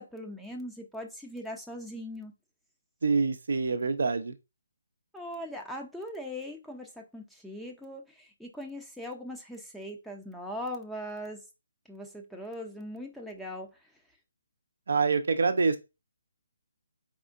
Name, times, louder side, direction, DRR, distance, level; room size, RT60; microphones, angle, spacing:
voice 1, 0.0-2.3 5.1-11.4 11.9-13.7, left 1 dB, ahead, 0.5 m, -40 dB
voice 2, 3.0-4.3 14.9-15.8, right 4 dB, 70° right, 0.6 m, -26 dB
4.2 x 3.6 x 2.5 m
hypercardioid pair, 150°, 0 cm